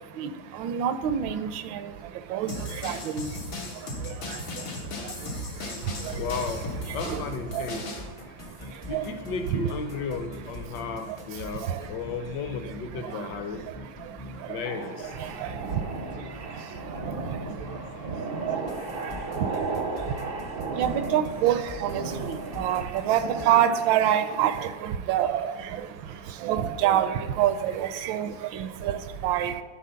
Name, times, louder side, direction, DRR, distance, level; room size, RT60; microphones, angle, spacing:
voice 1, 0.2-1.9 2.3-3.3 4.1-4.4 6.0-6.1 7.1-7.2 7.5-7.7 8.9-9.1 9.5-9.6 11.6-11.8 13.0-13.2 14.5-14.6 15.2-15.6 17.0-17.4 18.4-18.6 20.0-20.1 20.7-25.9 26.4-29.5, right 10 dB, 80° right, 11 dB, 1.3 m, -27 dB
sound 1, 2.5-8.0, left 1 dB, 90° left, 2.2 m, -36 dB
sound 2, 6.0-18.1 18.5-23.5, left 1 dB, 35° left, 0.5 m, -43 dB
voice 2, 6.1-8.0 8.9-13.6 14.5-15.2 17.7-18.1 18.8-19.4 26.1-26.2 29.1-29.3 29.5-29.6, left 4 dB, 65° left, 7 dB, 1.3 m, -35 dB
sound 3, 14.6-24.6, right 3 dB, 60° right, 0.6 m, -35 dB
11.5 x 4.0 x 5.7 m, 1.4 s
omnidirectional pair, 2.1 m